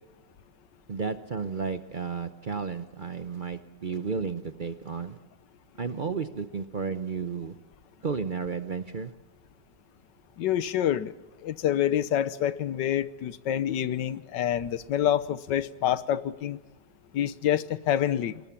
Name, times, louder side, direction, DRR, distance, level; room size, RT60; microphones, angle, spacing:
voice 1, 0.9-5.2 5.8-7.6 8.0-9.2, right 5 dB, 50° right, 11 dB, 0.6 m, -33 dB
voice 2, 10.4-11.1 11.4-16.6 17.1-18.4, left 10 dB, 80° left, 15 dB, 1.5 m, -27 dB
20.5 x 20.0 x 7.2 m, 1.2 s
omnidirectional pair, 1.9 m